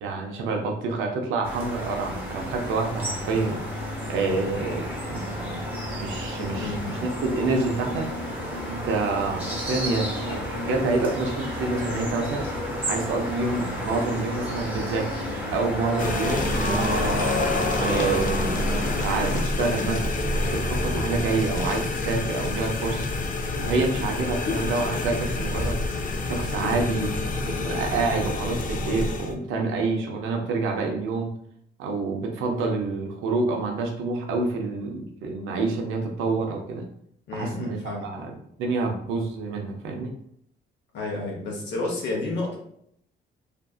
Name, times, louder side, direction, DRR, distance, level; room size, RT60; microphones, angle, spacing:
voice 1, 0.0-3.6 4.1-5.6 6.0-8.1 8.7-12.4 12.9-17.2 17.8-20.0 20.3-23.1 23.6-25.8 26.2-27.1 27.4-31.3 31.8-36.8 37.3-37.8 38.0-38.3 38.6-40.1, right 3 dB, 90° right, 2 dB, 0.5 m, -28 dB
sound 1, 1.4-19.4, equal, 10° right, 0.9 m, -32 dB
voice 2, 6.6-7.0 19.6-20.0 26.5-27.0 37.3-38.1 40.9-42.6, left 2 dB, 65° left, -2 dB, 0.8 m, -31 dB
sound 2, 15.8-21.8, equal, 45° right, 0.5 m, -31 dB
sound 3, 16.0-29.3, left 2 dB, 45° left, 0.4 m, -28 dB
2.6 x 2.4 x 2.3 m, 0.70 s
cardioid pair, 90°, 20 cm